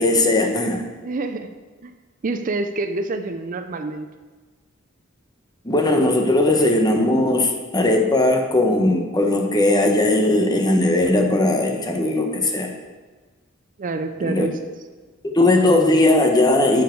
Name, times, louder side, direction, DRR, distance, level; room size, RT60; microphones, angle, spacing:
voice 1, 0.0-0.8 5.6-12.7 14.2-14.5 15.2-16.8, left 2 dB, 20° left, 3 dB, 1.0 m, -18 dB
voice 2, 1.0-1.5 1.8-1.9 2.2-4.1 13.8-14.6, right 3 dB, 40° right, 8 dB, 0.5 m, -27 dB
9.9 x 7.2 x 4.6 m, 1.3 s
head